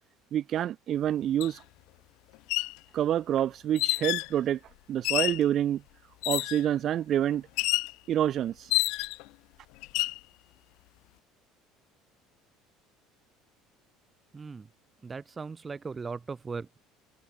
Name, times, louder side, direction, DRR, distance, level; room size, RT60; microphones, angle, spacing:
voice 1, 0.3-1.6 2.9-4.6 4.9-5.8 6.3-7.5 8.1-8.7, right 11 dB, 40° right, 4.2 m, -27 dB
sound 1, 1.4-1.5 2.3-2.8 3.8-4.3 5.0-5.5 6.2-6.7 7.6-7.9 8.7-9.3 9.8-10.2, left 24 dB, 70° left, 2.8 m, -28 dB
voice 2, 14.3-14.7 15.0-16.8, right 4 dB, 20° right, 3.0 m, -38 dB
cardioid pair, 140°, 0 cm